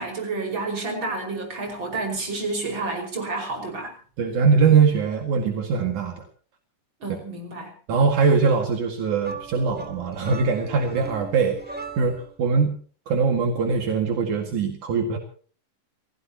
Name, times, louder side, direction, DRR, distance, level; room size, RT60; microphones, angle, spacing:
voice 1, 0.0-3.9 7.0-7.7, right 3 dB, 35° right, 2 dB, 5.9 m, -30 dB
voice 2, 4.2-6.3 7.9-12.8 13.1-15.2, right 5 dB, 70° right, 2 dB, 3.4 m, -22 dB
sound 1, 9.2-12.4, right 4 dB, 10° right, 0.6 m, -39 dB
29.5 x 16.0 x 2.9 m, 0.42 s
omnidirectional pair, 3.7 m